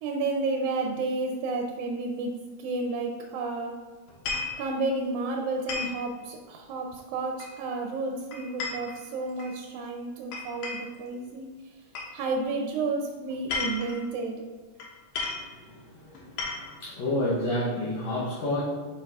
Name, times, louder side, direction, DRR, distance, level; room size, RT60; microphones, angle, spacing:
voice 1, 0.0-2.3 2.6-3.8 4.6-11.5 12.1-14.4, right 3 dB, 80° right, 2 dB, 1.8 m, -31 dB
sound 1, 4.1-4.6 5.7-6.0 7.4-7.8 8.3-9.5 10.3-11.0 11.9-12.1 13.3-14.0 14.8-14.9 15.1-15.5 16.1-16.8, left 4 dB, 85° left, 2.6 m, -33 dB
voice 2, 15.5-16.5 16.8-18.6, left 1 dB, 70° left, -6 dB, 1.9 m, -30 dB
7.8 x 5.2 x 2.4 m, 1.4 s
omnidirectional pair, 3.6 m